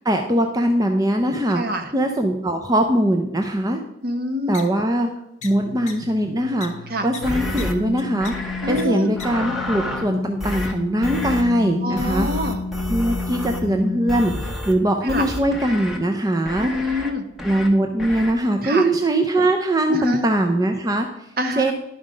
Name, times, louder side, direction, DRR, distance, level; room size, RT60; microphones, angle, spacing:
voice 1, 0.0-1.6 1.9-3.8 4.5-5.1 5.4-6.7 7.0-8.3 8.7-12.3 12.9-16.7 17.4-21.3 21.6-21.7, right 1 dB, 20° right, 4 dB, 0.5 m, -21 dB
voice 2, 1.5-1.9 4.0-4.6 6.9-7.1 8.6-9.1 11.8-12.6 15.0-15.3 16.6-17.3 18.6-18.9 19.9-20.2 21.4-21.7, equal, 50° right, 7 dB, 1.0 m, -26 dB
sound 1, 4.5-4.6 5.4-5.5 5.9-6.0 6.6-6.7 7.1-7.2 7.6-7.7 8.0-8.3 8.8-8.9 9.2-9.3, left 6 dB, 35° left, 1.3 m, -35 dB
sound 2, 5.4-14.7, left 4 dB, 65° left, 0.6 m, -32 dB
sound 3, 7.2-7.7 8.2-8.8 9.2-10.1 10.4-10.7 11.0-11.4 12.0-13.7 14.1-14.7 15.1-16.0 16.5-17.1 17.4-17.7 18.0-18.3, left 1 dB, ahead, 1.1 m, -30 dB
11.0 x 5.7 x 5.1 m, 0.85 s
head